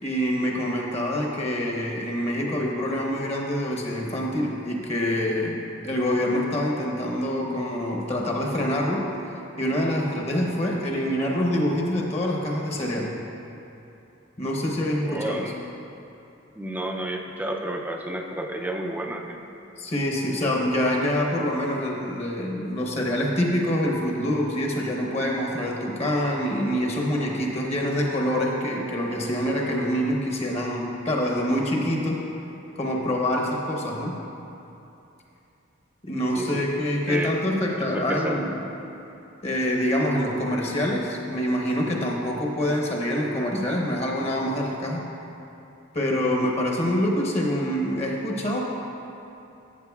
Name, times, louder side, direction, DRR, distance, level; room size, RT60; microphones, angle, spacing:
voice 1, 0.0-5.6 5.8-9.1 9.6-13.1 14.4-15.4 19.8-32.2 32.8-34.2 36.0-38.6 39.4-45.0 45.9-48.6, equal, 30° left, -1 dB, 0.8 m, -25 dB
voice 2, 15.0-15.6 16.5-19.4 36.4-36.7 37.1-37.4 37.9-38.5, right 1 dB, 10° right, 1 dB, 0.4 m, -31 dB
13.5 x 7.5 x 2.3 m, 2.8 s
head